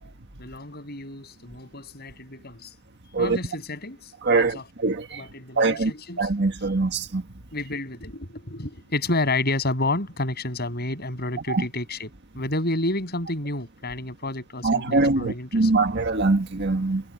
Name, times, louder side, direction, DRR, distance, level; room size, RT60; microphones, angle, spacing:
voice 1, 0.4-2.7 3.2-4.1 4.4-4.7 5.1-6.3 7.5-15.7, left 2 dB, 50° left, 8.0 m, -30 dB
voice 2, 4.2-4.6 4.8-5.2 5.6-5.9 6.2-7.2 14.6-17.0, right 3 dB, 55° right, 1.7 m, -22 dB
head